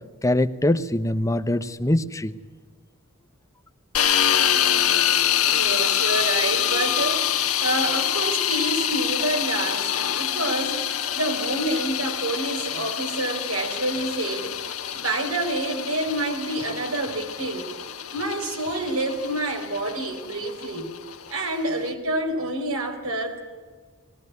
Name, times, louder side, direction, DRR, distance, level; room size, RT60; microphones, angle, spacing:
voice 1, 0.2-2.3, left 1 dB, 15° left, 9 dB, 0.9 m, -23 dB
sound 1, 3.9-21.9, left 10 dB, 80° left, 1.4 m, -26 dB
voice 2, 5.4-14.6 14.9-17.7 18.1-20.9 21.3-23.4, right 2 dB, 70° right, 4 dB, 4.2 m, -28 dB
20.5 x 18.5 x 9.5 m, 1.5 s
head